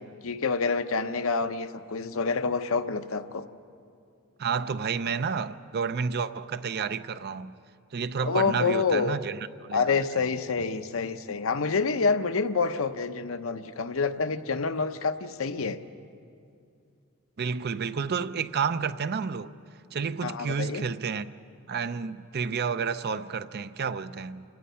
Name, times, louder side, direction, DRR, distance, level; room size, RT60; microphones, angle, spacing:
voice 1, 0.0-3.4 8.2-9.2 9.7-15.8 20.2-20.8, left 4 dB, 65° left, 0.8 m, -27 dB
voice 2, 4.4-7.5 7.9-9.4 9.7-9.8 17.4-19.5 19.9-21.3 21.7-24.4, right 6 dB, 50° right, 0.5 m, -30 dB
28.5 x 17.5 x 5.6 m
head